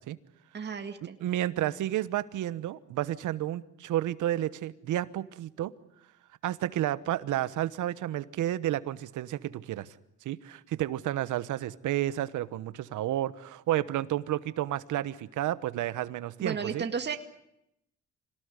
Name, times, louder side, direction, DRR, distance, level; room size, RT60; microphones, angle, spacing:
voice 1, 0.5-1.2 16.4-17.2, right 6 dB, 35° right, 6 dB, 2.0 m, -33 dB
voice 2, 1.2-5.7 6.4-9.9 10.2-16.8, right 13 dB, 80° right, 15 dB, 1.2 m, -31 dB
26.0 x 19.0 x 9.7 m, 0.81 s
cardioid pair, 90°, 30 cm